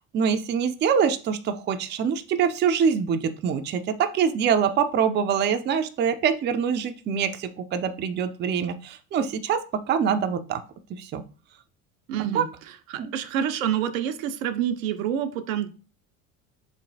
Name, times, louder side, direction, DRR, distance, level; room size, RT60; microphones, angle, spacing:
voice 1, 0.1-9.6 9.9-10.6 11.0-11.2 12.3-12.4 13.0-13.1, right 7 dB, 30° right, 9 dB, 0.4 m, -24 dB
voice 2, 12.1-15.7, right 9 dB, 75° right, 9 dB, 0.6 m, -28 dB
3.6 x 3.0 x 2.7 m, 0.35 s
hypercardioid pair, 70°, 41 cm